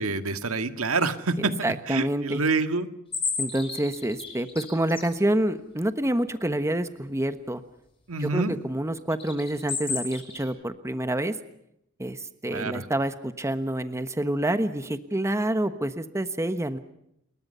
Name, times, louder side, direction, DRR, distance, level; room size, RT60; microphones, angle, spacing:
voice 1, 0.0-1.5 1.9-2.9 8.1-8.5 12.5-12.9, right 3 dB, 70° right, 9 dB, 1.9 m, -27 dB
voice 2, 1.4-2.4 3.4-7.6 8.2-11.4 12.0-16.8, right 1 dB, 15° right, 10 dB, 1.2 m, -27 dB
sound 1, 3.1-5.1 9.1-10.5, left 5 dB, 25° left, 6.8 m, -31 dB
29.0 x 22.0 x 5.6 m, 0.77 s
head